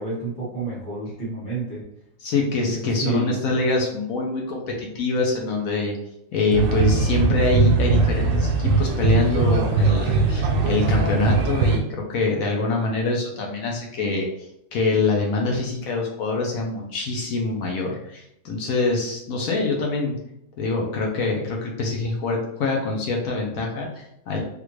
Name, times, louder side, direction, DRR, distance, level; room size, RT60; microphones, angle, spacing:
voice 1, 0.0-1.8 2.7-3.4, right 3 dB, 5° left, -8 dB, 1.0 m, -29 dB
voice 2, 2.2-6.0 6.3-20.2 20.6-24.4, left 3 dB, 65° left, 0 dB, 1.0 m, -25 dB
sound 1, 6.5-11.8, right 4 dB, 75° right, 1.1 m, -20 dB
3.5 x 2.4 x 3.1 m, 0.76 s
omnidirectional pair, 1.7 m